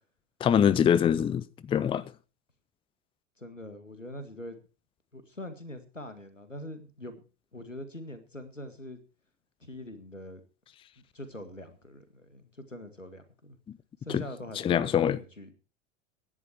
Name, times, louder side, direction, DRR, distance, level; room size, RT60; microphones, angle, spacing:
voice 1, 0.4-2.0 14.1-14.2 14.6-15.2, left 8 dB, 15° left, 0.6 m, -24 dB
voice 2, 3.4-4.6 5.1-7.2 7.5-9.0 9.6-10.4 11.1-13.6 14.0-15.5, left 1 dB, 90° left, 2.1 m, -43 dB
16.5 x 11.0 x 4.6 m
figure-of-eight pair, 80°, 37 cm